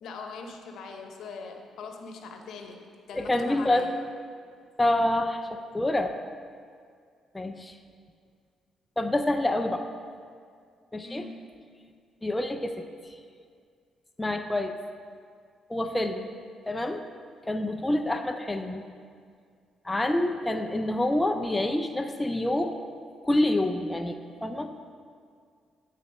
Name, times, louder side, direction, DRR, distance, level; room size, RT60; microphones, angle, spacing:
voice 1, 0.0-3.9 11.0-11.6 15.8-16.1, left 4 dB, 75° left, 4 dB, 0.8 m, -41 dB
voice 2, 3.1-3.9 4.8-6.1 7.3-7.7 9.0-9.9 10.9-11.2 12.2-12.8 14.2-14.7 15.7-16.3 16.7-17.0 17.5-18.8 19.9-22.8 23.2-24.7, left 1 dB, 15° left, 6 dB, 0.4 m, -27 dB
9.3 x 4.1 x 5.3 m, 2.1 s
cardioid pair, 90°, 0 cm